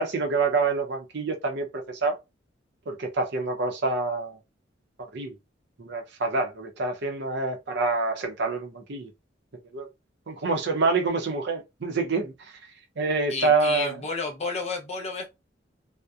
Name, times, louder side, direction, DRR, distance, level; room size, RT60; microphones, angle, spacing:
voice 1, 0.0-2.2 2.9-4.4 5.1-5.4 5.8-9.1 9.7-9.9 10.3-12.5 13.0-14.0, right 3 dB, 60° right, 0.6 m, -27 dB
voice 2, 13.3-15.3, left 3 dB, 35° left, 0.6 m, -31 dB
2.6 x 2.0 x 2.3 m
head